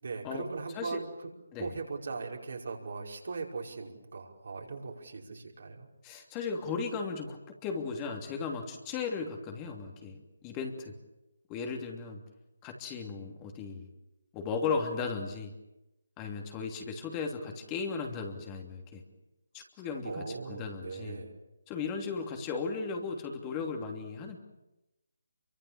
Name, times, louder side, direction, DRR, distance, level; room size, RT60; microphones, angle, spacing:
voice 1, 0.0-1.3 1.6-5.9 20.0-21.3, right 4 dB, 60° right, 0 dB, 5.3 m, -39 dB
voice 2, 6.0-10.9 11.5-12.2 12.6-13.9 14.3-15.5 16.2-19.0 19.5-21.2 21.7-24.4, left 5 dB, 20° left, 3 dB, 3.0 m, -36 dB
28.0 x 24.0 x 7.4 m, 0.96 s
figure-of-eight pair, 150°, 0 cm